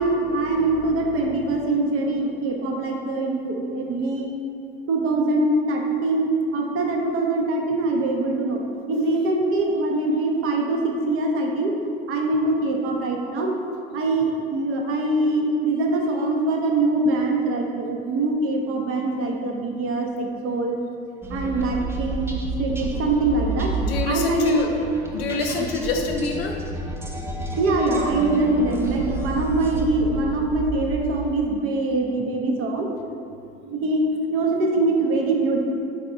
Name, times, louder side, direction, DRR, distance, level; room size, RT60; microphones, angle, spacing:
voice 1, 0.0-4.3 4.9-8.6 8.9-11.7 12.1-13.6 13.9-20.8 21.3-23.7 24.1-24.6 25.5-25.7 27.6-32.9 33.6-34.0 34.3-35.6, right 2 dB, 45° right, 1 dB, 0.7 m, -23 dB
sound 1, 21.2-31.4, right 2 dB, 10° right, 0.4 m, -30 dB
voice 2, 23.8-24.7 25.1-26.6, left 3 dB, 75° left, 3 dB, 0.5 m, -26 dB
4.2 x 3.4 x 2.5 m, 2.5 s
hypercardioid pair, 70°, 31 cm